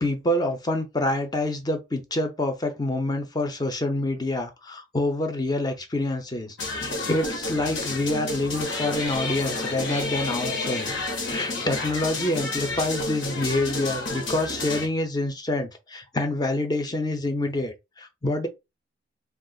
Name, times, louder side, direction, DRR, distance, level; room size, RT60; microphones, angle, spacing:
voice 1, 0.0-10.9 11.2-18.5, left 2 dB, 20° left, 0.6 m, -27 dB
sound 1, 6.6-14.9, left 2 dB, 80° left, 1.1 m, -30 dB
2.4 x 2.3 x 3.8 m
head